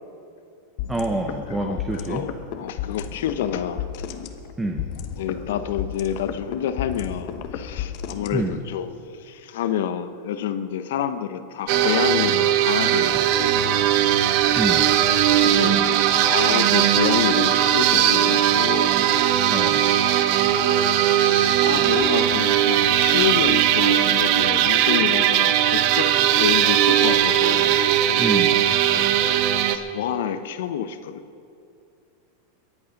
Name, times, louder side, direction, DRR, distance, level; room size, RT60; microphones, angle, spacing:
sound 1, 0.8-8.8, left 9 dB, 50° left, 1.0 m, -33 dB
voice 1, 0.9-2.2 4.6-4.8 8.3-8.6 14.6-14.8 19.5-19.8 28.2-28.5, right 2 dB, 10° right, 3 dB, 0.9 m, -26 dB
voice 2, 1.5-3.8 5.2-13.9 15.3-15.8 16.2-18.9 20.1-27.7 28.9-29.1 29.7-31.2, left 9 dB, 75° left, 10 dB, 0.9 m, -28 dB
sound 2, 11.7-29.8, right 11 dB, 55° right, 0.8 m, -19 dB
22.5 x 8.6 x 5.3 m, 2.5 s
supercardioid pair, 140°, 0 cm